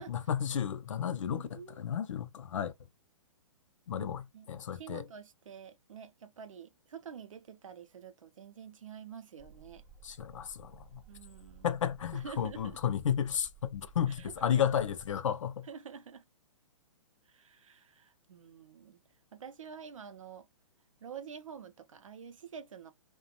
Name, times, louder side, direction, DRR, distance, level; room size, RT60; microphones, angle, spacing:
voice 1, 0.1-2.7 3.9-5.0 10.0-11.0 11.6-15.7, left 9 dB, 65° left, 0.4 m, -33 dB
voice 2, 1.2-1.9 4.0-4.1 4.3-9.8 11.1-11.8 12.1-12.8 14.1-14.7 15.6-16.2 17.3-19.0 19.3-20.5 21.0-22.9, right 7 dB, 75° right, 0.5 m, -48 dB
sound 1, 9.4-15.2, right 5 dB, 20° right, 0.6 m, -56 dB
2.4 x 2.1 x 2.7 m
figure-of-eight pair, 125°, 17 cm